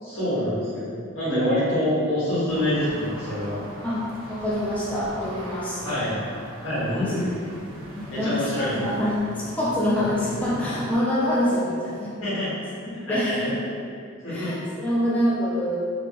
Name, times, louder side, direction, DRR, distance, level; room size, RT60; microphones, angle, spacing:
voice 1, 0.0-3.6 5.8-6.2 6.6-7.3 8.1-8.9 12.2-12.5 12.8-13.5 14.2-14.5, left 1 dB, 85° left, -11 dB, 1.4 m, -26 dB
voice 2, 1.3-1.7 3.8-4.0 4.3-5.8 6.7-7.1 7.9-12.1 13.1-13.7 14.3-15.8, left 1 dB, 5° left, -8 dB, 0.3 m, -26 dB
sound 1, 2.5-10.9, right 1 dB, 70° right, 0.6 m, -39 dB
3.4 x 2.2 x 2.8 m, 2.3 s
head